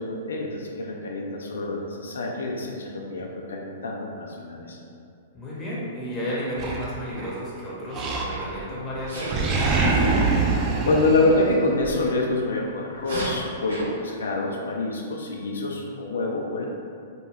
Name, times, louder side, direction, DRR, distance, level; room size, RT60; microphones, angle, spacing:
voice 1, 0.0-4.8 10.9-16.7, left 2 dB, 80° left, 0 dB, 0.3 m, -26 dB
voice 2, 5.3-9.5, equal, 20° left, -7 dB, 0.8 m, -32 dB
Animal, 6.6-7.4 7.9-8.7 9.0-11.9, right 3 dB, 30° right, 0.3 m, -24 dB
Sneeze, 8.3-8.5 9.1-9.4 11.9-12.1 12.9-13.9, right 1 dB, 85° right, 0.8 m, -34 dB
2.3 x 2.2 x 3.2 m, 2.3 s
hypercardioid pair, 115°, 0 cm